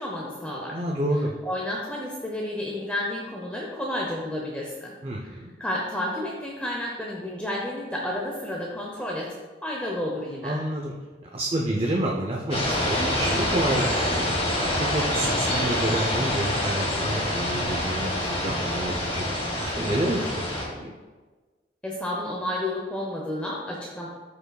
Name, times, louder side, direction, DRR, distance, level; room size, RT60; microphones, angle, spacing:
voice 1, 0.0-0.8 1.4-9.3 9.6-10.6 21.8-24.1, left 1 dB, 5° left, -3 dB, 0.7 m, -31 dB
voice 2, 0.7-1.3 5.0-5.5 10.4-10.9 11.3-14.3 14.8-19.3 19.6-21.0, right 1 dB, 30° right, -1 dB, 0.6 m, -29 dB
sound 1, 12.5-20.7, left 1 dB, 30° left, 1.6 m, -26 dB
13.0 x 5.1 x 2.3 m, 1.3 s
head